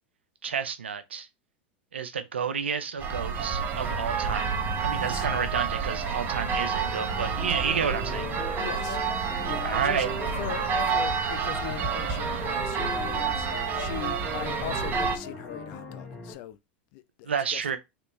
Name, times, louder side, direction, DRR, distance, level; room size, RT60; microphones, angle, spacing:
voice 1, 0.4-1.3 1.9-4.5 4.8-8.6 9.6-10.1 17.2-17.8, right 6 dB, 85° right, 0.5 m, -30 dB
sound 1, 3.0-15.2, right 5 dB, 35° right, 0.7 m, -29 dB
voice 2, 4.9-5.3 8.6-9.0 9.4-10.0 10.4-13.5 13.7-16.6 16.9-17.8, left 13 dB, 55° left, 0.4 m, -40 dB
sound 2, 7.4-16.3, left 2 dB, 35° left, 1.7 m, -39 dB
3.1 x 3.1 x 3.1 m
hypercardioid pair, 95°, 6 cm